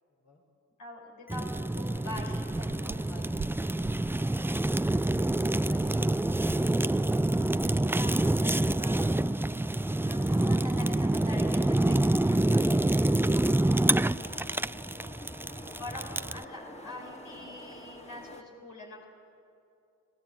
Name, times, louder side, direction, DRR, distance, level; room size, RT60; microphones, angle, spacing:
voice 1, 0.8-3.1 8.0-9.0 10.0-14.5 15.8-19.1, left 2 dB, 75° left, -1 dB, 5.1 m, -45 dB
Fire, 1.3-16.4, right 1 dB, 5° right, 0.6 m, -27 dB
sound 1, 1.4-8.6, right 6 dB, 40° right, 0.8 m, -47 dB
sound 2, 1.9-18.4, left 1 dB, 20° left, 2.7 m, -49 dB
voice 2, 2.8-3.8 5.0-7.9 14.9-15.9, left 1 dB, 55° left, 2 dB, 4.6 m, -55 dB
30.0 x 18.5 x 8.9 m, 2.6 s
supercardioid pair, 45°, 31 cm